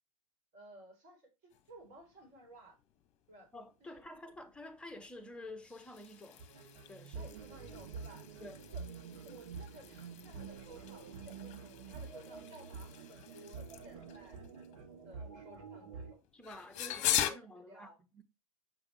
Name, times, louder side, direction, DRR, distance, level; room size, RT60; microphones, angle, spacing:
voice 1, 0.5-2.8 3.3-3.5 3.8-4.0 7.1-8.4 8.7-8.9 9.2-14.4 15.0-16.2 16.7-18.0, right 1 dB, 40° right, 4.1 m, -56 dB
sound 1, 1.5-17.3, left 11 dB, 40° left, 1.0 m, -43 dB
voice 2, 3.5-6.4 6.9-7.3 8.4-8.6 16.3-18.2, left 1 dB, 5° left, 1.1 m, -50 dB
sound 2, 6.4-16.1, right 5 dB, 60° right, 2.0 m, -48 dB
7.4 x 5.5 x 3.4 m
figure-of-eight pair, 95°, 18 cm